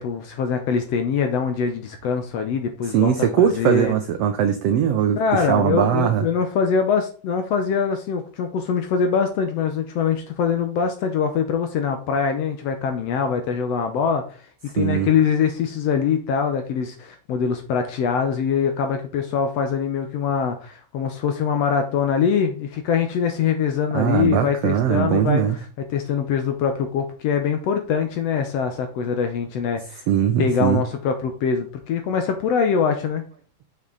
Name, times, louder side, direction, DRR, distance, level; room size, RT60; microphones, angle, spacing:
voice 1, 0.0-3.9 5.2-14.2 14.7-25.6 25.9-30.0 30.4-33.2, left 6 dB, 70° left, 6 dB, 1.7 m, -23 dB
voice 2, 2.9-6.2 14.8-15.1 23.9-25.6 30.1-30.8, right 9 dB, 85° right, 8 dB, 1.4 m, -20 dB
6.9 x 6.0 x 3.9 m, 0.41 s
omnidirectional pair, 3.6 m